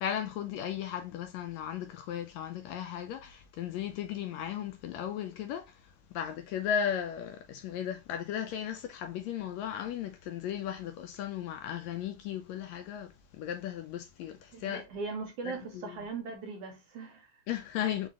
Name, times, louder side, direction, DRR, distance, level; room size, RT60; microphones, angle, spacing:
voice 1, 0.0-5.7 6.1-13.1 13.4-14.8 15.9-16.0 17.5-18.1, left 9 dB, 80° left, 1.7 m, -36 dB
voice 2, 14.5-17.4, right 4 dB, 75° right, 1.5 m, -40 dB
5.2 x 2.4 x 3.6 m
omnidirectional pair, 3.5 m